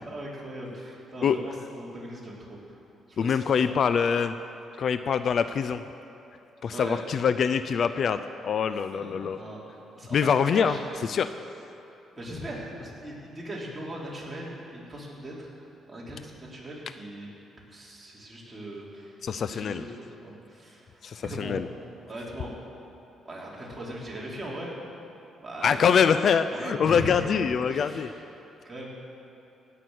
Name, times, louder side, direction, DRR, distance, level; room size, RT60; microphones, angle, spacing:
voice 1, 0.0-2.6 3.1-4.0 6.7-7.0 8.9-10.8 12.2-15.5 15.9-17.3 17.7-19.2 19.5-21.6 22.1-22.5 23.2-24.7 25.4-26.0 26.5-27.4 27.7-28.2 28.6-28.9, right 1 dB, 20° right, -5 dB, 3.5 m, -39 dB
voice 2, 3.2-4.3 4.8-5.8 6.6-9.4 10.1-10.8 11.1-11.3 19.2-19.8 21.0-21.7 25.6-28.1, left 7 dB, 55° left, 11 dB, 0.4 m, -24 dB
17.5 x 6.0 x 7.8 m, 2.8 s
cardioid pair, 90°, 0 cm